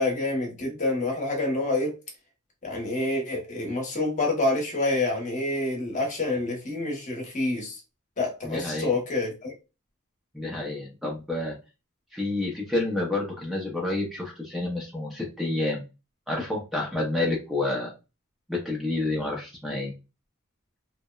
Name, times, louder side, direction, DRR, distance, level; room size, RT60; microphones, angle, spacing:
voice 1, 0.0-1.9 2.6-7.8 8.2-9.5, left 2 dB, 35° left, 0.9 m, -27 dB
voice 2, 8.4-9.0 10.3-11.6 12.1-15.8 16.3-17.9 18.5-19.9, left 2 dB, ahead, 0.5 m, -29 dB
2.8 x 2.0 x 2.2 m
head